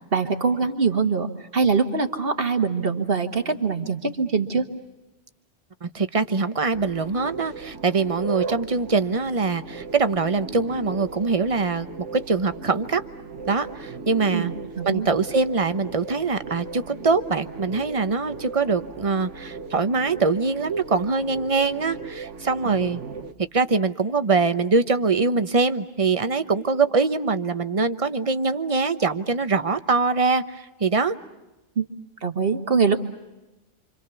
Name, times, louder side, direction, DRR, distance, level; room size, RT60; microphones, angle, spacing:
voice 1, 0.1-4.7 14.3-15.1 22.6-22.8 31.8-31.9 32.2-33.0, right 5 dB, 55° right, 7 dB, 1.7 m, -23 dB
voice 2, 5.8-11.9 12.1-13.0 13.5-14.5 14.8-23.0 23.5-31.2, right 4 dB, 30° right, 10 dB, 1.0 m, -23 dB
sound 1, 6.7-23.3, right 4 dB, 85° right, 1.6 m, -37 dB
27.5 x 26.5 x 7.0 m, 1.0 s
omnidirectional pair, 1.2 m